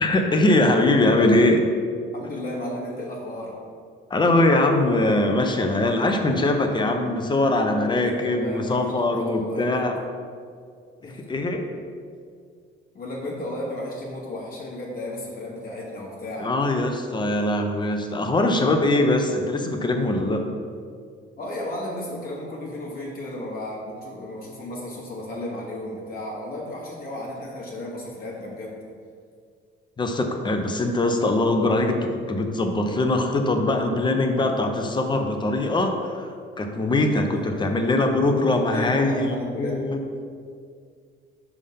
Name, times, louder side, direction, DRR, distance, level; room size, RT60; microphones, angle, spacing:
voice 1, 0.0-1.7 4.1-9.9 11.0-11.6 16.4-20.4 30.0-36.3 36.6-40.0, left 2 dB, 20° left, 4 dB, 0.6 m, -22 dB
voice 2, 2.1-3.5 8.0-9.9 11.0-11.2 12.9-16.5 21.4-28.8 37.1-37.2 38.5-39.8, left 1 dB, 45° left, -4 dB, 1.2 m, -34 dB
5.3 x 3.5 x 5.5 m, 2.1 s
cardioid pair, 120°, 20 cm